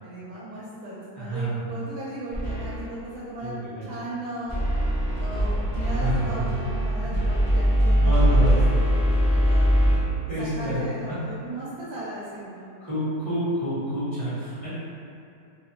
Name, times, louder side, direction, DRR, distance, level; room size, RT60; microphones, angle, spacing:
voice 1, 0.0-3.5 3.8-4.6 5.2-9.7 10.4-12.7, right 1 dB, 85° right, -9 dB, 1.4 m, -37 dB
voice 2, 1.1-1.7 3.4-3.8 6.0-6.7 7.0-7.1 7.9-8.6 9.9-10.0 10.3-11.1 11.4-11.5 12.8-14.7, right 1 dB, 20° right, -14 dB, 0.7 m, -28 dB
sound 1, 2.3-3.0 4.5-10.0, equal, 35° left, 0.3 m, -22 dB
3.4 x 2.1 x 2.8 m, 2.5 s
omnidirectional pair, 2.1 m